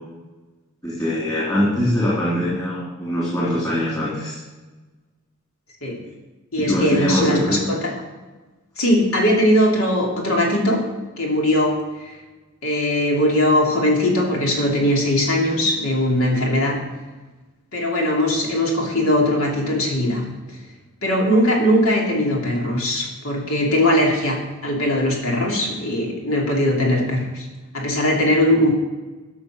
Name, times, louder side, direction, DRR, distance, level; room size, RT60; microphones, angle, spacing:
voice 1, 0.8-4.4 6.7-7.6, left 1 dB, 20° left, -8 dB, 3.3 m, -22 dB
voice 2, 6.5-7.9 8.8-10.9 11.2-12.2 12.6-16.8 17.7-20.3 21.0-27.5 27.7-28.7, left 1 dB, 80° left, -1 dB, 2.8 m, -20 dB
12.5 x 5.8 x 6.3 m, 1.2 s
head